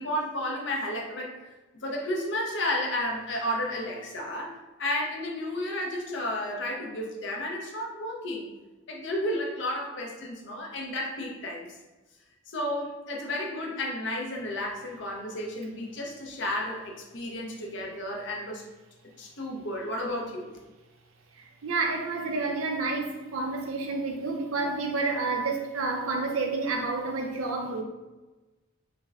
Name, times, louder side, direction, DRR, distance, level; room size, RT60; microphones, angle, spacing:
voice 1, 0.0-1.4 1.8-8.5 8.9-11.8 12.5-18.6 19.2-20.5, left 1 dB, 60° left, 0 dB, 0.7 m, -32 dB
voice 2, 21.4-27.8, right 3 dB, 80° right, 2 dB, 0.6 m, -29 dB
5.8 x 2.1 x 2.4 m, 1.1 s
head